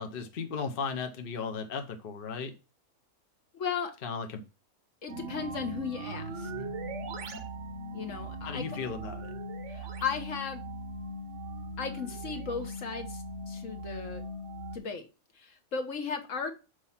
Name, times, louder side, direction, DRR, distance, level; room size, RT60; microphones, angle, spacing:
voice 1, 0.0-2.5 4.0-4.4 8.4-9.3, left 5 dB, 45° left, 0.9 m, -36 dB
voice 2, 3.5-3.9 5.0-6.5 7.9-8.6 9.7-10.6 11.8-14.2 14.7-15.0 15.4-16.5, left 6 dB, 65° left, 1.5 m, -36 dB
sound 1, 5.1-14.8, right 1 dB, 65° right, 1.1 m, -39 dB
6.4 x 4.4 x 5.6 m
omnidirectional pair, 1.4 m